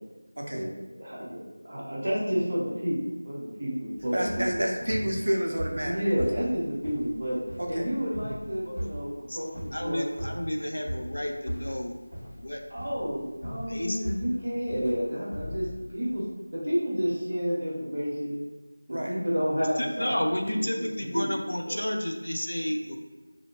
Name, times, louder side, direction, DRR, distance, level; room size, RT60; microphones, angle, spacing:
voice 1, 0.5-3.0 3.2-4.6 5.8-7.4 7.7-9.5 9.8-10.0 12.7-15.7 15.9-16.2 16.5-18.4 18.9-20.3 20.6-20.8 21.1-21.3 21.6-21.8, equal, 25° right, -7 dB, 0.7 m, -30 dB
sound 1, 4.0-16.2, equal, 65° left, 1.4 m, -38 dB
voice 2, 4.1-6.2 7.6-7.8 18.9-19.1, right 1 dB, 55° right, 0 dB, 0.4 m, -29 dB
voice 3, 9.7-12.0 12.4-12.6 13.4-14.2 19.6-23.0, left 1 dB, 85° left, 3 dB, 0.4 m, -31 dB
2.6 x 2.0 x 2.9 m, 1.2 s
figure-of-eight pair, 180°, 0 cm